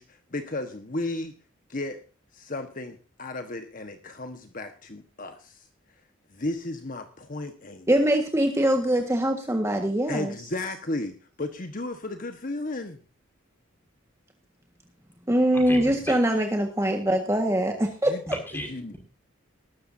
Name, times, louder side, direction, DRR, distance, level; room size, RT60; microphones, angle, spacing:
voice 1, 0.0-1.3 1.7-2.0 2.3-5.7 6.3-7.9 10.1-13.0 18.0-18.2 18.5-18.9, left 2 dB, 45° left, 7 dB, 1.3 m, -34 dB
voice 2, 7.9-10.3 15.3-18.1, right 1 dB, 15° right, 4 dB, 1.6 m, -23 dB
voice 3, 15.5-16.2 18.3-19.0, equal, 10° left, 2 dB, 5.7 m, -36 dB
19.5 x 13.5 x 2.7 m, 0.34 s
head